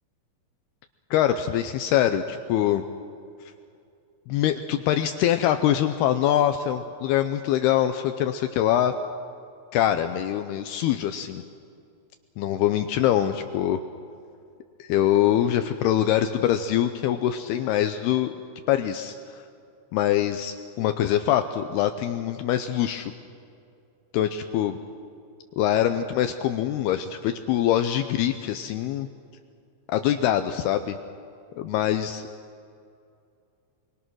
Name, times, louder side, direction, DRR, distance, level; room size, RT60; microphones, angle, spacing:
voice 1, 1.1-2.8 4.3-8.9 9.7-11.4 12.4-13.8 14.8-18.3 18.7-19.4 19.9-23.1 24.1-24.8 25.6-29.1 29.9-31.0 31.6-32.3, left 11 dB, 85° left, 8 dB, 2.3 m, -24 dB
27.0 x 23.5 x 6.2 m, 2.5 s
omnidirectional pair, 5.4 m